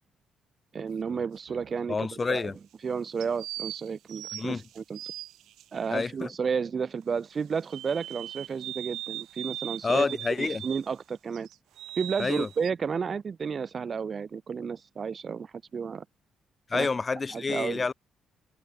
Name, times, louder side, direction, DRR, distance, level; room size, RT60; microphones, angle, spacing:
voice 1, 0.7-2.5 2.8-5.0 5.7-10.1 10.4-11.5 12.0-16.1 16.7-16.9 17.3-17.8, right 6 dB, 45° right, 1.7 m, -32 dB
sound 1, 0.8-1.8 3.2-5.6 7.7-10.9 11.3-12.7, right 13 dB, 85° right, 2.3 m, -40 dB
voice 2, 1.9-2.6 4.3-4.6 5.9-6.3 9.8-10.6 12.2-12.5 16.7-17.9, left 4 dB, 30° left, 1.6 m, -28 dB
cardioid pair, 90°, 0 cm